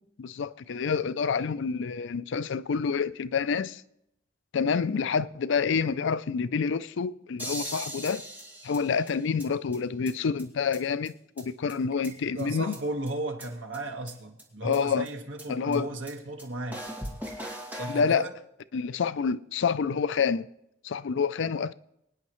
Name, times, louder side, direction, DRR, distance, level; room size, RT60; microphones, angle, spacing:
voice 1, 0.2-3.8 4.5-8.2 8.6-12.7 14.6-15.1 15.5-15.9 17.9-18.3 18.7-20.5 20.8-21.7, left 6 dB, 65° left, 0.4 m, -28 dB
sound 1, 7.4-9.5 9.7-9.8 10.1-10.2 10.4-10.5 10.7-10.8 11.1-11.2 11.4-11.5 11.7-12.4 12.7-12.8 13.1-13.2 13.4-13.5 13.7-13.8 14.1-14.2 14.4-14.5 14.7-14.8 15.1-15.2 15.4-15.5 15.7-15.8 16.1-16.2 16.4-16.5 16.7-18.1, equal, 10° right, 2.3 m, -39 dB
voice 2, 12.3-16.8 17.7-18.3, right 2 dB, 70° right, 1.6 m, -35 dB
25.0 x 9.7 x 3.1 m
head